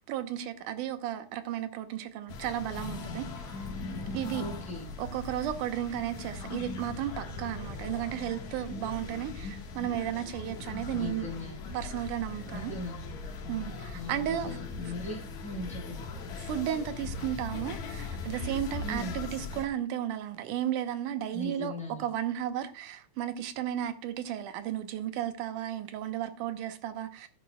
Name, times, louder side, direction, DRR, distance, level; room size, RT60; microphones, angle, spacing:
voice 1, 0.0-3.7 4.1-4.4 5.0-11.3 11.7-12.7 13.5-14.6 16.4-21.7 22.0-27.3, right 11 dB, 90° right, 2.6 m, -34 dB
sound 1, 2.3-19.7, left 3 dB, 70° left, 3.0 m, -39 dB
voice 2, 4.3-4.9 10.9-11.6 12.5-13.2 13.9-16.0 18.8-19.2 21.3-22.0, left 2 dB, ahead, 5.1 m, -39 dB
13.5 x 11.0 x 2.3 m
omnidirectional pair, 3.5 m